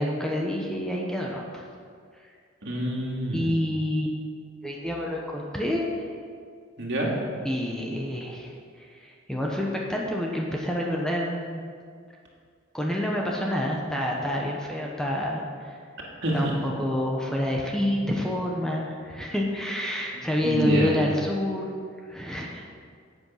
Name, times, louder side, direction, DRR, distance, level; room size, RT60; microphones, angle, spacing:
voice 1, 0.0-1.6 2.2-2.3 3.3-4.2 4.6-5.9 7.4-11.6 12.7-15.8 16.3-21.7 22.1-22.6, left 1 dB, 5° left, -2 dB, 1.0 m, -28 dB
voice 2, 2.6-3.5 6.8-7.1 16.2-16.5 20.1-21.0, right 1 dB, 60° right, -2 dB, 2.4 m, -27 dB
11.0 x 8.2 x 5.7 m, 2.1 s
head